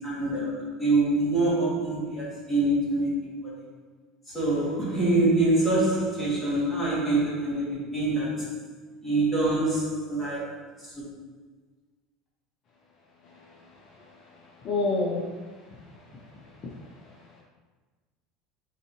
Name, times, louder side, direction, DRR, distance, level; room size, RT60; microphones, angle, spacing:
voice 1, 0.0-3.5 4.3-8.6 9.0-10.5 10.9-11.0, right 2 dB, 5° left, -9 dB, 1.4 m, -25 dB
voice 2, 14.0-14.4 14.6-15.3 15.7-15.8 16.6-16.7 17.0-17.1, left 3 dB, 35° left, -3 dB, 0.5 m, -29 dB
4.0 x 3.4 x 2.9 m, 1.3 s
cardioid pair, 160°, 0 cm